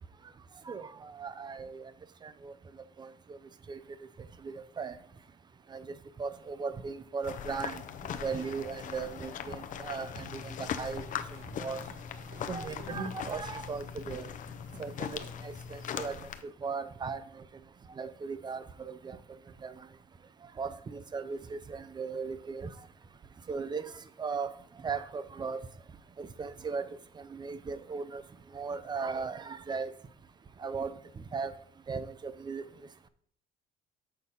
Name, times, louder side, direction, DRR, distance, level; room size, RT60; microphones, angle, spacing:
voice 1, 0.7-1.9 2.2-2.5 3.0-3.1 3.7-3.8 4.4-5.0 5.7-5.8 6.2-7.8 8.2-11.1 11.6-11.8 12.5-14.3 14.8-16.2 16.6-17.2 18.0-19.2 19.6-19.7 20.6-22.7 23.5-23.9 24.2-24.5 24.8-25.6 26.2-26.9 27.3-28.2 28.5-29.9 30.6-30.9 31.3-31.5 31.9-32.6, right 5 dB, 25° right, 14 dB, 0.5 m, -37 dB
sound 1, 7.2-16.4, left 9 dB, 50° left, 0.6 m, -40 dB
sound 2, 10.3-16.1, left 3 dB, 60° right, 1.5 m, -48 dB
6.5 x 4.0 x 5.5 m, 0.64 s
cardioid pair, 110°, 17 cm